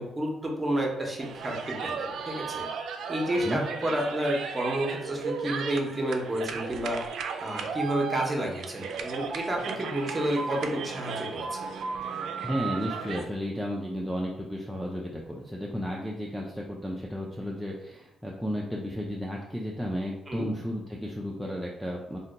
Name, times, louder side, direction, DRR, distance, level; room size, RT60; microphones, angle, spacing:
voice 1, 0.0-2.7 3.1-7.0 7.4-11.7 20.3-20.5, right 1 dB, 20° right, 0 dB, 0.8 m, -30 dB
sound 1, 1.2-13.2, right 5 dB, 70° right, 0.3 m, -35 dB
voice 2, 12.4-22.2, equal, ahead, -3 dB, 0.4 m, -33 dB
2.7 x 2.2 x 3.8 m, 0.87 s
cardioid pair, 90°, 0 cm